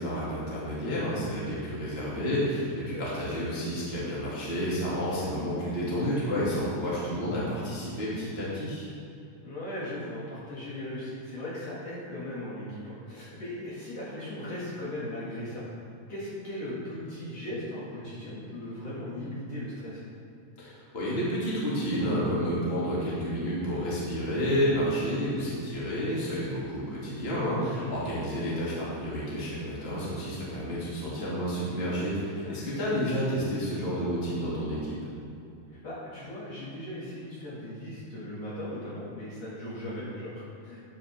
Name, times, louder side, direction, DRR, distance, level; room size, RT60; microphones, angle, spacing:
voice 1, 0.0-8.9 20.6-35.0, equal, 20° left, -8 dB, 2.4 m, -30 dB
voice 2, 9.4-15.6 16.1-20.0 27.5-28.0 32.4-33.0 35.7-40.8, left 1 dB, 50° left, -8 dB, 3.1 m, -38 dB
11.5 x 9.1 x 3.6 m, 2.6 s
omnidirectional pair, 4.0 m